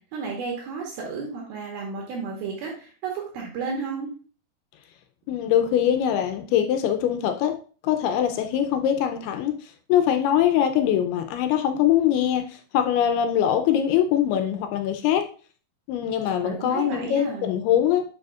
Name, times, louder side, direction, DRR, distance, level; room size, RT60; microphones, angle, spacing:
voice 1, 0.1-4.1 16.4-17.6, right 5 dB, 70° right, -1 dB, 2.8 m, -32 dB
voice 2, 5.3-7.6 7.8-15.2 15.9-18.0, left 10 dB, 80° left, 6 dB, 2.4 m, -22 dB
10.5 x 4.8 x 2.4 m, 0.40 s
omnidirectional pair, 4.8 m